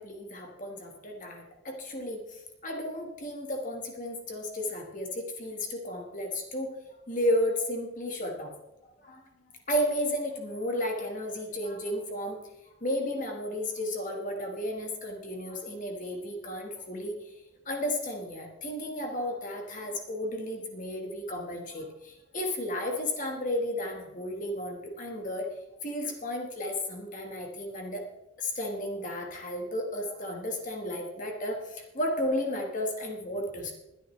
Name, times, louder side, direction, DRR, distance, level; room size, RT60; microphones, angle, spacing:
voice 1, 0.0-6.7 7.1-8.5 8.8-9.2 9.7-12.4 12.8-17.3 17.6-25.5 25.8-28.0 28.4-33.7, left 1 dB, 40° left, 2 dB, 1.5 m, -33 dB
21.5 x 9.4 x 3.2 m, 0.93 s
head